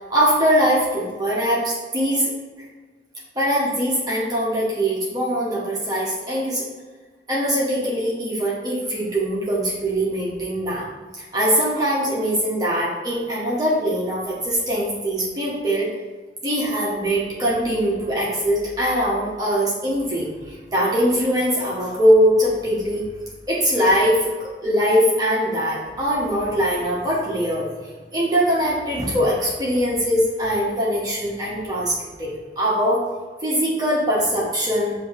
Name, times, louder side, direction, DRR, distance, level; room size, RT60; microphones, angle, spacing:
voice 1, 0.1-2.3 3.4-6.6 7.3-10.9 11.2-15.9 16.4-23.0 23.5-27.7 28.1-31.9 32.2-32.3 32.6-33.0 33.4-34.9, equal, 20° right, -7 dB, 0.8 m, -22 dB
7.6 x 2.6 x 2.5 m, 1.4 s
head